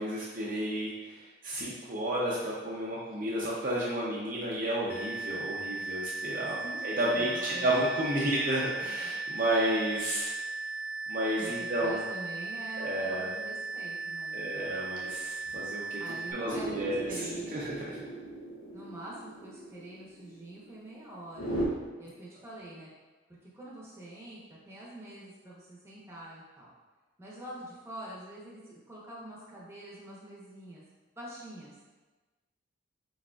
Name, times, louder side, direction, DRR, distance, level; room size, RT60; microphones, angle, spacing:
voice 1, 0.0-10.3 11.1-12.0 12.8-13.3 14.3-17.8, right 1 dB, 40° right, -6 dB, 0.5 m, -32 dB
sound 1, 4.9-16.3, right 3 dB, 50° left, 0.6 m, -37 dB
voice 2, 6.6-7.7 11.4-14.7 16.0-17.6 18.7-21.6 22.0-22.9 23.5-24.4 24.7-26.7 27.2-30.8 31.2-31.7, right 1 dB, 15° right, -6 dB, 0.9 m, -45 dB
sound 2, 16.5-21.7, right 1 dB, 85° left, 1.0 m, -38 dB
4.9 x 4.0 x 2.3 m, 1.3 s
head